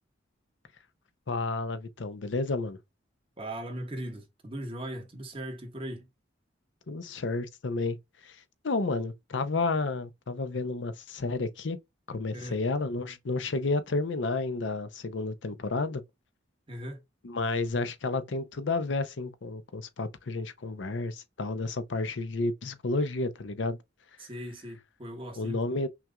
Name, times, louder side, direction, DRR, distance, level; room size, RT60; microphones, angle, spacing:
voice 1, 1.3-2.8 6.9-8.0 8.2-8.4 8.6-11.8 12.1-16.0 17.2-23.8 25.4-25.9, left 3 dB, 75° left, 0.7 m, -31 dB
voice 2, 3.4-6.1 12.3-12.6 16.7-17.0 24.2-25.6, right 1 dB, 30° right, 1.2 m, -39 dB
5.9 x 2.4 x 2.3 m
head